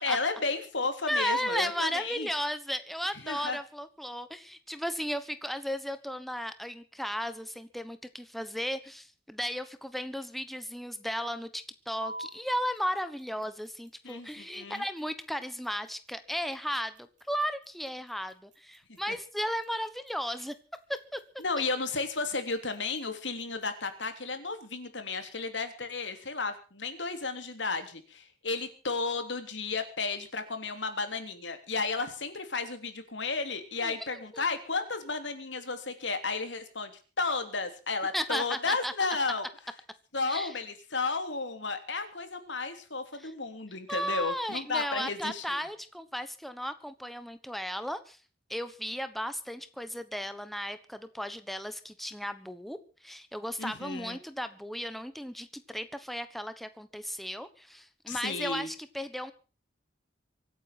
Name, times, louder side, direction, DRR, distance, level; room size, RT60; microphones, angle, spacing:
voice 1, 0.0-2.3 3.2-3.6 14.0-14.8 19.1-19.2 21.4-36.9 37.2-39.5 40.1-45.4 53.6-54.2 58.1-58.7, left 4 dB, 80° left, 8 dB, 3.3 m, -33 dB
voice 2, 1.1-20.5 20.9-21.2 33.8-34.4 38.1-38.9 40.3-40.6 43.2-43.3 43.9-48.2 48.5-59.3, equal, ahead, 10 dB, 1.2 m, -35 dB
sound 1, 12.0-24.0, right 1 dB, 45° right, 5.1 m, -51 dB
24.5 x 9.3 x 6.0 m, 0.37 s
head